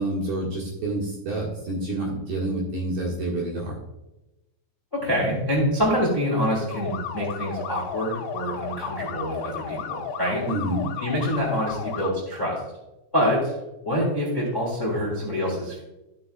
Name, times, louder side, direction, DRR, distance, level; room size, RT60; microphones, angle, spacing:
voice 1, 0.0-3.8 10.5-10.9, right 1 dB, 60° right, -5 dB, 3.0 m, -28 dB
voice 2, 4.9-10.4 11.0-12.6 13.1-13.5 13.8-15.8, equal, 15° left, -4 dB, 1.8 m, -26 dB
sound 1, 6.7-12.1, left 7 dB, 90° left, 2.3 m, -34 dB
15.0 x 6.8 x 2.4 m, 0.98 s
omnidirectional pair, 5.9 m